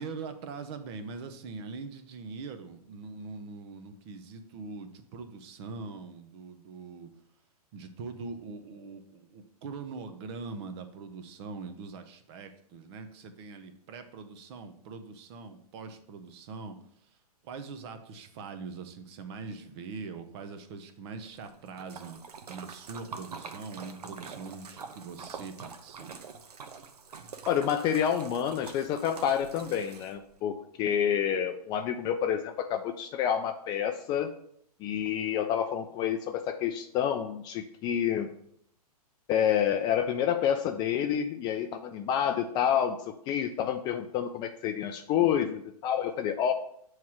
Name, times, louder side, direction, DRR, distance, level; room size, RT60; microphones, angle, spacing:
voice 1, 0.0-7.1 7.7-16.8 17.4-22.2 22.5-26.1, right 4 dB, 40° right, 9 dB, 0.8 m, -42 dB
Splash splatter, 21.2-30.4, right 5 dB, 75° right, 0.8 m, -45 dB
voice 2, 27.5-34.3 34.8-38.3 39.3-46.5, left 9 dB, 20° left, 7 dB, 0.4 m, -28 dB
6.9 x 3.2 x 6.1 m, 0.68 s
hypercardioid pair, 120°, 20 cm